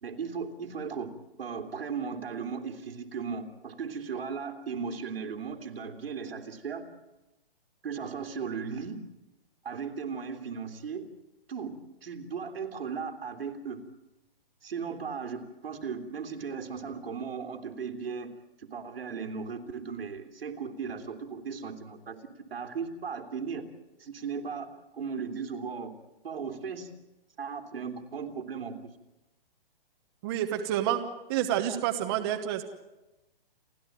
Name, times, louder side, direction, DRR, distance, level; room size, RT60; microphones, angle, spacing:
voice 1, 0.0-6.9 7.8-9.0 9.6-11.1 11.5-13.8 14.6-18.3 18.6-22.2 22.5-23.7 24.0-25.9 26.2-26.9 27.4-28.9, right 6 dB, 80° right, 6 dB, 3.0 m, -37 dB
voice 2, 30.2-31.0 31.3-32.6, right 11 dB, 25° right, 6 dB, 1.1 m, -28 dB
30.0 x 12.0 x 9.1 m, 1.0 s
hypercardioid pair, 160°, 29 cm